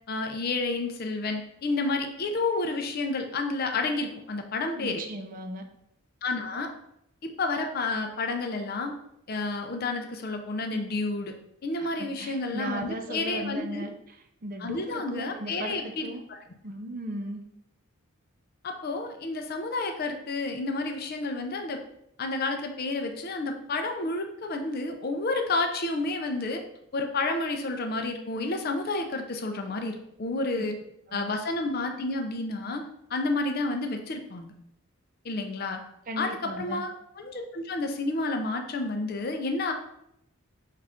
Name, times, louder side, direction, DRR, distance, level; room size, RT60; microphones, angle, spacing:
voice 1, 0.1-5.0 6.2-6.7 7.4-9.0 9.3-11.3 11.6-13.9 14.6-16.4 18.6-21.8 22.2-26.6 26.9-30.7 31.1-32.8 33.1-34.5 35.2-35.8 36.2-36.3 36.6-39.7, left 3 dB, 45° left, 5 dB, 0.4 m, -30 dB
voice 2, 4.7-5.7 11.8-16.2 16.6-17.4 30.5-30.6 31.1-31.3 36.1-36.8, right 1 dB, 40° right, 5 dB, 0.5 m, -37 dB
5.5 x 2.4 x 3.5 m, 0.77 s
head